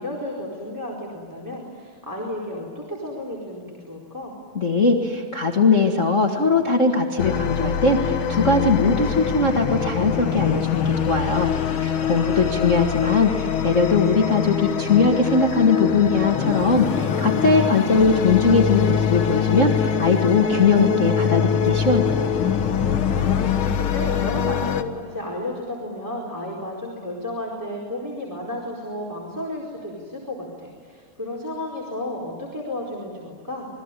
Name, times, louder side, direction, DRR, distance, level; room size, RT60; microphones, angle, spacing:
voice 1, 0.0-4.3 12.1-12.7 23.1-33.7, left 1 dB, 5° right, -3 dB, 4.2 m, -33 dB
voice 2, 4.5-11.5 11.8-22.1, left 4 dB, 30° left, 1 dB, 1.7 m, -20 dB
sound 1, 7.2-24.8, left 8 dB, 55° left, 1.7 m, -23 dB
28.0 x 21.5 x 9.9 m, 2.1 s
omnidirectional pair, 3.5 m